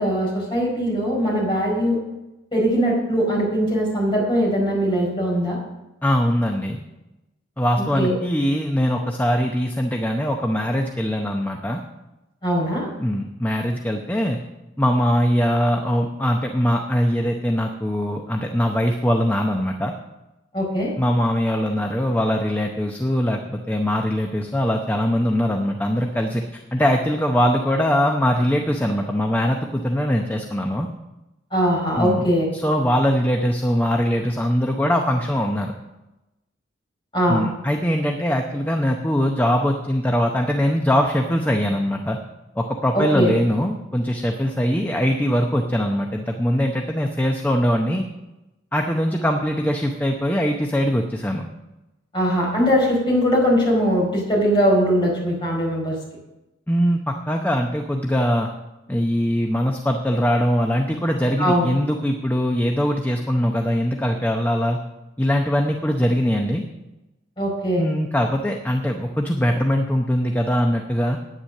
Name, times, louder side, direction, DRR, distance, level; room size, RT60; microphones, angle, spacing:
voice 1, 0.0-2.0 2.5-5.6 7.9-8.1 12.4-12.9 20.5-20.9 31.5-32.5 37.1-37.5 42.9-43.3 52.1-55.9 61.4-61.7 67.4-67.9, equal, 25° left, -3 dB, 4.7 m, -20 dB
voice 2, 6.0-6.8 7.6-11.8 13.0-14.4 14.8-19.9 21.0-30.9 32.0-32.2 32.5-35.7 37.3-42.2 42.6-48.0 48.7-51.5 56.7-58.5 58.9-64.8 65.2-66.6 67.8-71.2, equal, 10° left, 3 dB, 0.7 m, -22 dB
10.0 x 9.4 x 6.6 m, 0.98 s
head